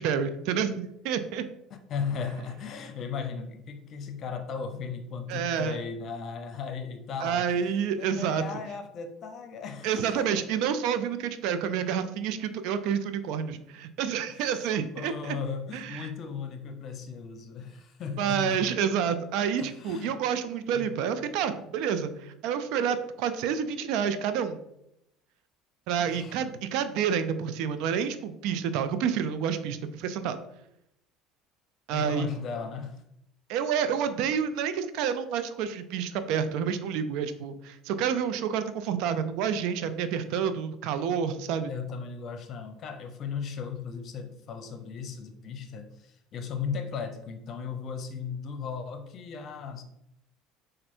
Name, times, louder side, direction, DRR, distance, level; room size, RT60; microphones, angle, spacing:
voice 1, 0.0-1.5 5.3-5.8 7.2-8.4 9.8-15.4 15.7-16.1 18.2-24.6 25.9-30.4 31.9-32.3 33.5-41.7, right 7 dB, 70° right, 11 dB, 0.4 m, -29 dB
voice 2, 1.7-10.5 14.3-18.7 19.6-20.2 20.7-21.0 26.1-26.5 31.9-33.0 41.7-49.8, left 6 dB, 50° left, 7 dB, 0.7 m, -37 dB
4.3 x 2.6 x 4.3 m, 0.79 s
supercardioid pair, 95°, 0 cm